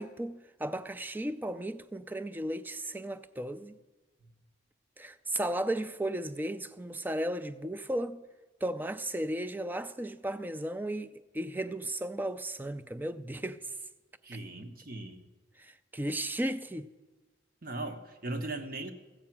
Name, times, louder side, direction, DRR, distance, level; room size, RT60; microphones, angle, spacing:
voice 1, 0.0-3.8 5.0-8.2 8.6-13.6 15.6-16.9, right 1 dB, 10° right, 0.3 m, -35 dB
voice 2, 14.2-15.2 17.6-18.9, right 2 dB, 45° right, 1.1 m, -38 dB
14.0 x 8.6 x 5.9 m
head